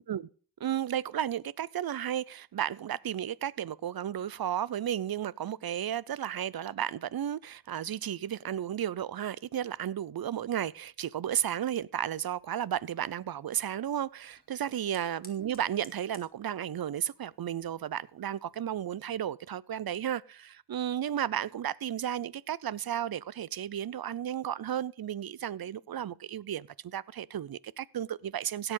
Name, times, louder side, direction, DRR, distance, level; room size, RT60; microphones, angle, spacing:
voice 1, 0.6-28.7, right 10 dB, 60° right, 0.6 m, -33 dB
Fire, 12.0-19.2, left 2 dB, 20° left, 3.2 m, -61 dB
17.0 x 7.9 x 3.8 m
wide cardioid pair, 75°, 42 cm